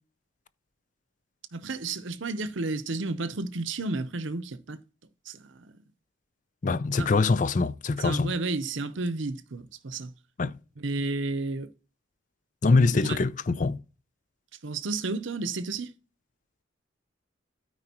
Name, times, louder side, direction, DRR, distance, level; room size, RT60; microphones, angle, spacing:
voice 1, 1.5-4.8 5.3-5.4 7.0-7.1 8.0-10.1 10.8-11.7 12.9-13.2 14.6-15.9, right 3 dB, 70° right, 0.8 m, -32 dB
voice 2, 6.6-8.3 10.4-10.6 12.6-13.8, left 3 dB, 40° left, 0.4 m, -24 dB
12.5 x 4.8 x 2.9 m
head